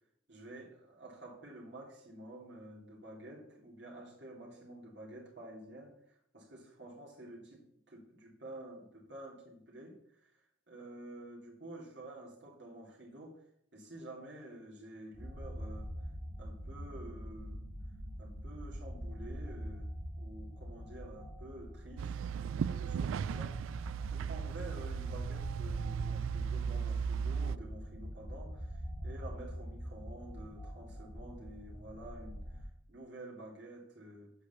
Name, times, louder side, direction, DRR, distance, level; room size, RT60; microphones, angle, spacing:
voice 1, 0.3-5.9 6.3-10.3 10.7-13.4 13.7-15.9 16.4-17.6 18.2-19.9 20.2-23.7 24.1-28.8 29.0-34.3, right 1 dB, 60° right, -2 dB, 2.5 m, -50 dB
sound 1, 15.1-32.6, equal, 10° right, 2.2 m, -44 dB
sound 2, 22.0-27.6, right 7 dB, 90° right, 0.3 m, -36 dB
8.2 x 5.1 x 6.8 m, 0.72 s
head